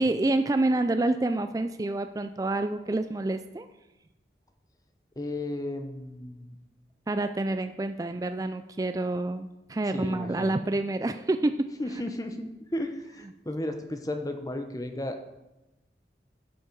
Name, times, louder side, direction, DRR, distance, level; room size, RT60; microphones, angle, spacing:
voice 1, 0.0-3.7 7.1-11.7, right 2 dB, 20° right, 9 dB, 0.3 m, -28 dB
voice 2, 5.2-6.5 9.9-10.6 11.8-15.2, left 1 dB, 20° left, 6 dB, 0.8 m, -34 dB
11.5 x 7.2 x 4.6 m, 0.99 s
head